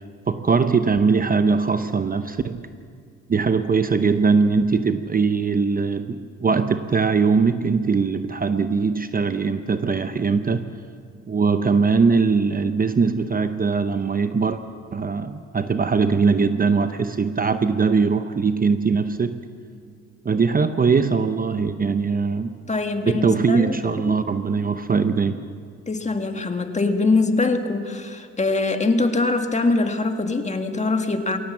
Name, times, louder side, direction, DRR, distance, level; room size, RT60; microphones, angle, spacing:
voice 1, 0.3-2.6 3.3-10.7 11.3-14.6 14.9-19.4 20.2-22.5 23.0-25.4, right 5 dB, 30° right, 10 dB, 0.8 m, -21 dB
voice 2, 22.7-24.2 25.9-31.4, left 3 dB, 25° left, 6 dB, 1.8 m, -23 dB
22.0 x 17.5 x 7.3 m, 2.1 s
cardioid pair, 90°, 30 cm